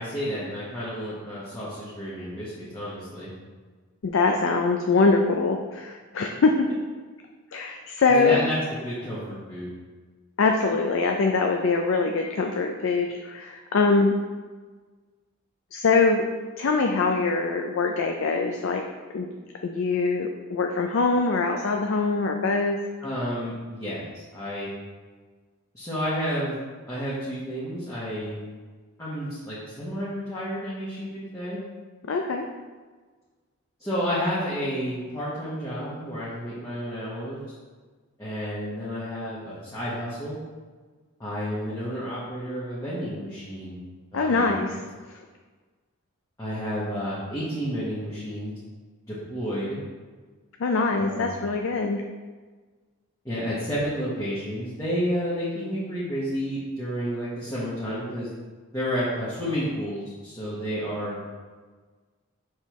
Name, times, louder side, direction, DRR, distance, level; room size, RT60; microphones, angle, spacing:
voice 1, 0.0-3.3 8.1-8.6 8.8-9.7 23.0-24.7 25.7-26.6 26.9-28.4 29.0-31.6 33.8-37.4 38.2-40.3 41.2-43.8 44.1-44.8 46.4-48.5 49.1-49.8 51.0-51.3 53.2-58.3 58.7-61.2, equal, 15° left, -10 dB, 1.1 m, -31 dB
voice 2, 4.0-6.7 7.5-8.4 10.4-14.1 15.7-16.3 16.6-18.8 19.1-19.3 19.6-22.8 32.0-32.5 44.1-44.8 45.1-45.2 50.6-52.0, left 4 dB, 60° left, 3 dB, 0.4 m, -23 dB
6.4 x 5.2 x 3.1 m, 1.4 s
head